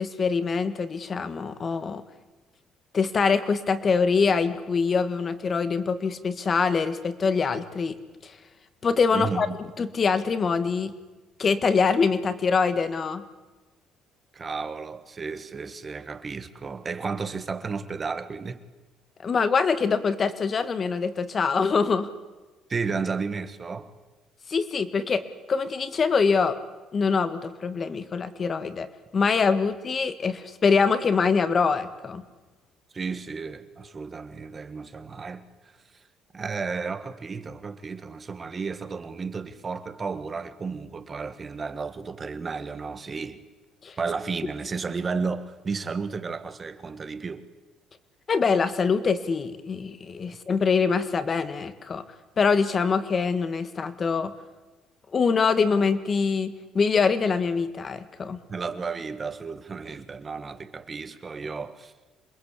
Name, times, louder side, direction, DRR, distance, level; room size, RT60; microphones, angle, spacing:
voice 1, 0.0-2.0 2.9-8.0 8.2-8.4 8.8-9.5 9.8-10.9 11.4-13.2 19.2-22.1 24.5-26.6 26.9-28.9 29.1-32.2 43.8-44.0 48.3-52.0 52.4-54.3 55.1-58.4, left 5 dB, 30° left, 1.8 m, -24 dB
voice 2, 9.1-9.6 14.3-18.6 22.7-23.9 32.9-35.7 36.3-43.4 44.0-47.5 50.3-50.4 58.5-61.9, right 4 dB, 25° right, 1.6 m, -33 dB
27.5 x 21.5 x 8.5 m
cardioid pair, 135°, 0 cm